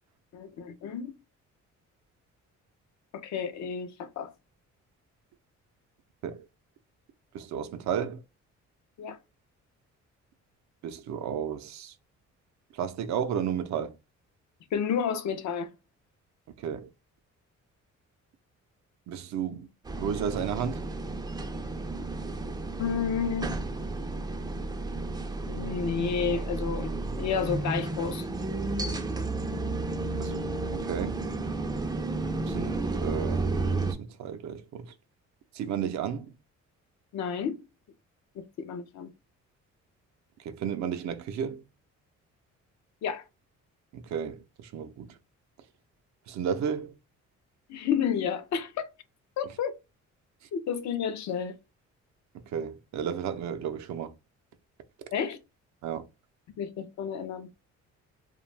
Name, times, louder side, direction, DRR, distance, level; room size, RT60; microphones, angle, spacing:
voice 1, 0.3-1.1 3.1-4.3 9.0-9.2 14.7-15.7 22.8-23.6 25.4-28.3 37.1-37.6 38.4-39.1 43.0-43.2 47.7-48.9 49.4-49.7 50.5-51.6 55.1-55.4 56.6-57.5, left 7 dB, 65° left, 0.6 m, -31 dB
voice 2, 7.3-8.2 10.8-11.9 12.8-13.9 16.6-16.9 19.1-19.7 20.0-20.9 30.2-30.4 30.8-31.2 32.5-33.5 33.9-34.9 35.5-36.3 40.5-41.6 43.9-45.1 46.3-46.9 52.5-54.1 55.8-56.0, right 8 dB, 65° right, 0.5 m, -33 dB
sound 1, 19.9-33.9, right 2 dB, 15° right, 0.4 m, -32 dB
2.5 x 2.3 x 3.2 m
cardioid pair, 90°, 30 cm